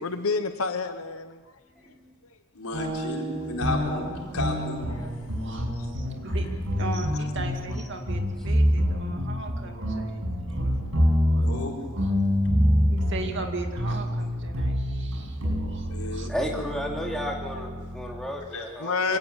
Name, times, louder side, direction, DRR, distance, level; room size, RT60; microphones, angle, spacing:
voice 1, 0.0-1.4 5.0-5.1 5.5-5.9 18.8-19.2, left 4 dB, 70° left, 8 dB, 1.0 m, -29 dB
voice 2, 2.5-4.1 4.3-4.8 11.4-11.7 15.9-16.5 18.5-18.7, left 2 dB, 85° left, 0 dB, 4.4 m, -33 dB
sound 1, 2.7-18.3, equal, 80° right, 7.9 m, -27 dB
voice 3, 4.8-10.2 10.5-10.8 11.2-11.5 11.9-12.2 12.9-16.3 19.0-19.2, right 3 dB, 55° right, 4 dB, 2.3 m, -38 dB
voice 4, 10.2-11.1 11.4-11.5 12.4-12.6 15.5-19.2, equal, ahead, -1 dB, 2.7 m, -35 dB
24.0 x 18.0 x 7.4 m, 1.4 s
head